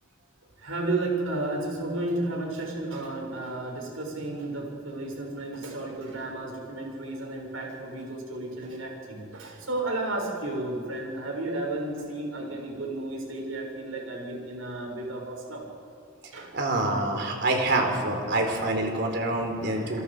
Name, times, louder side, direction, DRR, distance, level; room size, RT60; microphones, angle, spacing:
voice 1, 0.6-15.6 16.3-16.5 18.5-18.7 19.6-20.0, right 2 dB, 80° right, 0 dB, 6.3 m, -33 dB
voice 2, 16.5-20.0, right 2 dB, 55° right, 3 dB, 4.0 m, -26 dB
29.0 x 22.0 x 5.0 m, 2.5 s
head